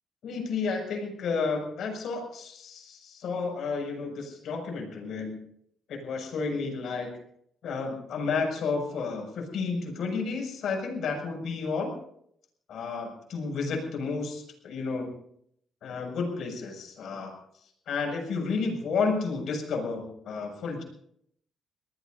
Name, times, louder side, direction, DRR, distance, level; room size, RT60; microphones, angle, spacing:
voice 1, 0.2-5.4 5.9-7.1 7.6-11.9 12.7-15.1 15.8-17.3 17.9-20.8, left 4 dB, 70° left, 2 dB, 6.7 m, -31 dB
26.0 x 19.0 x 2.8 m, 0.70 s
cardioid pair, 90°, 0 cm